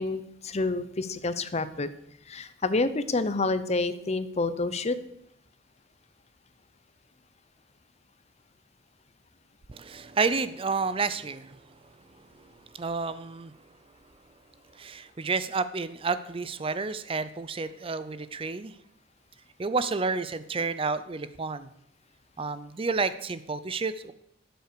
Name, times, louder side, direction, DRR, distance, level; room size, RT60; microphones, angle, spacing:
voice 1, 0.0-1.9 2.3-5.0, left 3 dB, 35° left, 13 dB, 0.8 m, -28 dB
voice 2, 9.7-11.6 12.4-12.5 12.7-13.5 14.7-18.8 19.6-21.7 22.4-24.1, right 4 dB, 30° right, 14 dB, 0.5 m, -30 dB
12.5 x 7.9 x 6.7 m, 0.75 s
head